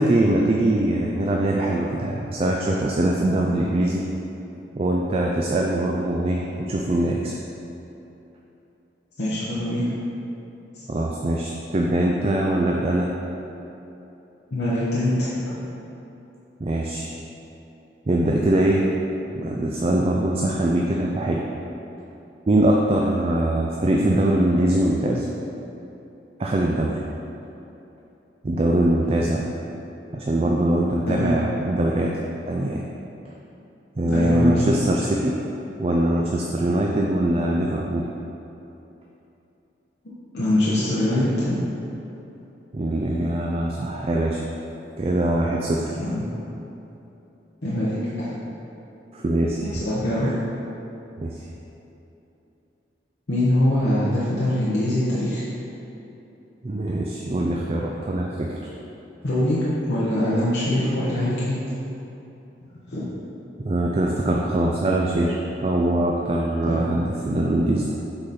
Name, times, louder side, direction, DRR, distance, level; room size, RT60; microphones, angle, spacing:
voice 1, 0.0-4.1 4.8-7.3 10.9-13.1 16.6-17.1 18.1-18.9 19.4-21.4 22.5-25.3 26.4-27.0 28.4-29.4 30.1-32.9 34.0-35.3 35.8-38.1 42.7-44.4 45.0-46.0 49.1-49.8 50.2-50.3 51.2-51.4 56.6-58.7 63.6-68.0, right 1 dB, 35° right, -1 dB, 0.4 m, -22 dB
voice 2, 9.2-9.9 10.7-10.9 14.5-15.3 31.1-31.3 34.1-34.8 40.3-41.6 43.1-43.2 46.0-46.3 47.6-48.3 49.6-50.3 53.3-55.4 59.2-61.6 62.9-63.1 66.7-66.8, left 1 dB, 70° left, -9 dB, 1.0 m, -23 dB
7.9 x 4.0 x 4.2 m, 3.0 s
head